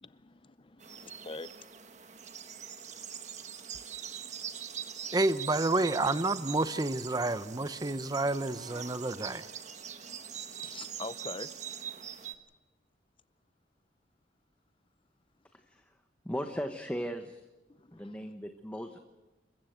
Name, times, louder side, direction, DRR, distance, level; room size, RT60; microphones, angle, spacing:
voice 1, 0.0-1.5 10.0-10.1 10.5-11.5 17.7-18.2, left 3 dB, 30° left, 15 dB, 0.7 m, -44 dB
sound 1, 0.8-12.4, right 8 dB, 40° right, 1.3 m, -43 dB
voice 2, 5.1-9.5, right 2 dB, 20° right, 14 dB, 0.8 m, -29 dB
voice 3, 16.2-17.4 17.9-19.0, equal, 10° left, 5 dB, 1.1 m, -37 dB
28.0 x 15.5 x 7.9 m, 1.1 s
head